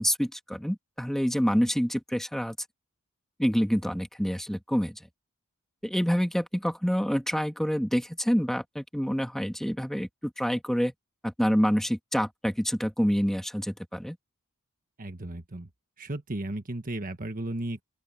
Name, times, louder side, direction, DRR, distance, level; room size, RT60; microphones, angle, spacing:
voice 1, 0.0-2.6 3.4-5.0 5.8-10.9 11.2-14.2, equal, ahead, 2.1 m, -27 dB
voice 2, 15.0-15.7 16.0-17.8, right 1 dB, 40° right, 1.4 m, -34 dB
open air
head